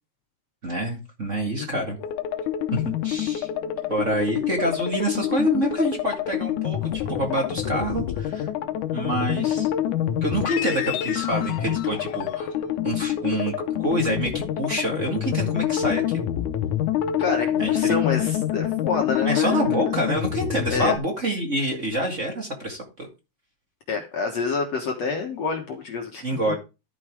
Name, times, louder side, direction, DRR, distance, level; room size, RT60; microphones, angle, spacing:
voice 1, 0.6-2.0 2.7-3.5 3.9-8.5 8.9-9.7 10.2-12.5 12.8-16.3 17.6-17.9 19.2-23.1 26.2-26.6, right 1 dB, 30° right, 1 dB, 1.4 m, -27 dB
sound 1, 2.0-21.0, left 11 dB, 85° left, 1.8 m, -26 dB
voice 2, 17.2-19.7 20.7-20.9 23.9-26.6, left 4 dB, 60° left, 2 dB, 1.8 m, -28 dB
12.5 x 5.3 x 4.9 m, 0.28 s
omnidirectional pair, 4.7 m